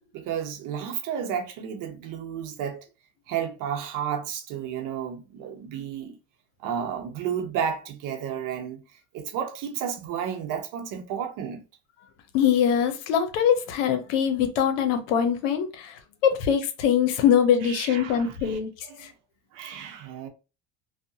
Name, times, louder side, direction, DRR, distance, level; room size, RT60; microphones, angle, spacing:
voice 1, 0.1-2.9 3.3-6.2 6.6-8.8 9.1-11.6 17.6-18.6 18.9-19.1 19.5-20.3, right 8 dB, 60° right, 0.8 m, -32 dB
voice 2, 12.3-18.7 19.0-19.1, left 8 dB, 90° left, 0.7 m, -23 dB
2.7 x 2.2 x 2.6 m
supercardioid pair, 105°, 36 cm